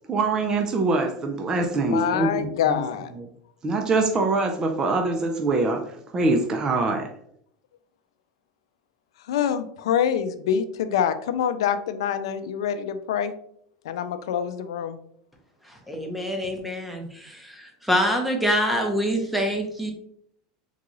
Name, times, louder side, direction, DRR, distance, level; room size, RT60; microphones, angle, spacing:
voice 1, 0.1-2.8 3.6-7.1, right 3 dB, 25° right, 3 dB, 0.5 m, -24 dB
voice 2, 1.8-3.1 9.3-13.3 13.8-15.0, left 8 dB, 90° left, 11 dB, 0.4 m, -25 dB
voice 3, 15.9-19.9, equal, ahead, 1 dB, 0.8 m, -25 dB
3.8 x 2.3 x 3.0 m, 0.67 s
supercardioid pair, 120°, 3 cm